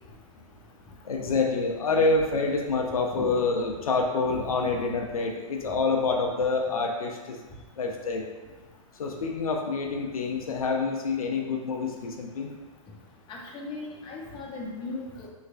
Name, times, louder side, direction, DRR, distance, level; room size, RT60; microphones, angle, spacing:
voice 1, 1.0-7.4 7.8-8.3 9.0-12.5, left 3 dB, 90° left, 2 dB, 0.4 m, -27 dB
voice 2, 13.3-15.3, left 3 dB, 25° left, -3 dB, 0.7 m, -37 dB
3.2 x 3.1 x 2.5 m, 1.3 s
hypercardioid pair, 110°, 18 cm